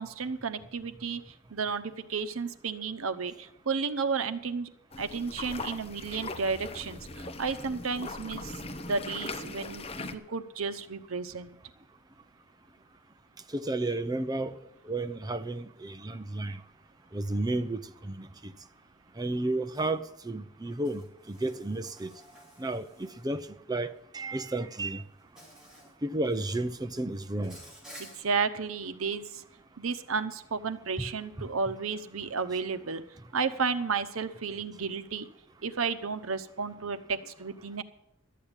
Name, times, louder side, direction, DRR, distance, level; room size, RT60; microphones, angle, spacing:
voice 1, 0.0-4.7 5.0-8.5 8.9-11.6 28.0-29.4 29.8-33.0 33.3-35.3 35.6-37.8, right 5 dB, 85° right, 0.9 m, -32 dB
sound 1, 4.9-10.1, left 2 dB, 30° left, 0.9 m, -40 dB
voice 2, 13.5-14.6 14.8-16.6 17.1-18.5 19.2-22.1 22.6-25.0 26.0-27.6, right 2 dB, 20° right, 0.6 m, -32 dB
Insect, 19.7-19.9 20.8-23.4 24.5-24.7 25.4-25.9 26.2-26.7 27.4-28.2, equal, 5° right, 5.7 m, -52 dB
12.5 x 8.6 x 8.9 m
head